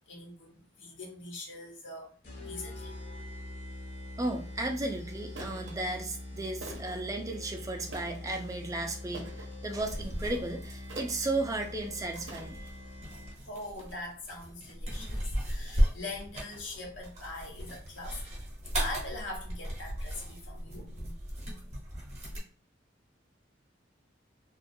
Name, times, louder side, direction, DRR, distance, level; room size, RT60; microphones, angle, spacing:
voice 1, 0.1-2.1 2.4-3.0 13.5-18.3 18.7-21.1, left 2 dB, 75° left, 0 dB, 0.9 m, -42 dB
sound 1, 2.2-13.6, left 1 dB, 40° left, 0.7 m, -44 dB
voice 2, 4.2-12.6, right 2 dB, 20° right, 3 dB, 0.4 m, -34 dB
sound 2, 4.4-4.5 5.4-5.8 6.6-7.0 7.9-8.3 9.1-9.6 10.9-11.3 12.3-12.8 13.8-13.9, right 2 dB, 75° right, 0.6 m, -45 dB
sound 3, 9.8-22.4, equal, 35° right, 0.8 m, -36 dB
2.3 x 2.3 x 2.6 m, 0.41 s
head